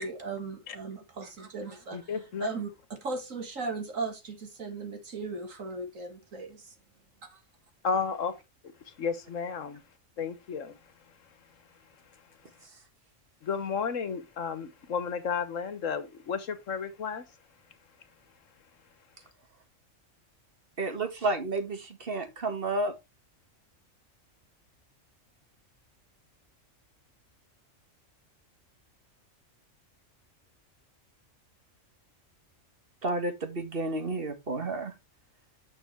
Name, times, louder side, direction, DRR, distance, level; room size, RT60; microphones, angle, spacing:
voice 1, 0.0-2.1 2.4-6.7 7.3-7.4, right 3 dB, 80° right, 2.5 m, -37 dB
voice 2, 1.9-2.6 7.8-8.3 8.9-9.8 10.2-10.8 13.4-17.2, left 6 dB, 75° left, 1.5 m, -32 dB
voice 3, 20.8-22.9 33.0-34.9, right 2 dB, 45° right, 1.8 m, -31 dB
8.8 x 6.1 x 4.5 m
omnidirectional pair, 1.3 m